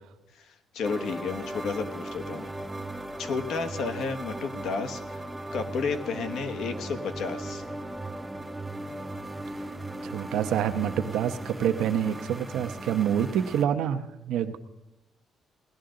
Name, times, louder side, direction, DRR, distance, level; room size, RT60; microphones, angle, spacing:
voice 1, 0.4-2.5 3.2-5.2 5.5-7.6, left 5 dB, 60° left, 9 dB, 1.1 m, -32 dB
sound 1, 0.8-13.6, right 2 dB, 10° right, 0.4 m, -37 dB
voice 2, 10.0-14.6, right 9 dB, 80° right, 8 dB, 0.8 m, -27 dB
18.5 x 11.5 x 3.8 m, 0.94 s
cardioid pair, 165°, 0 cm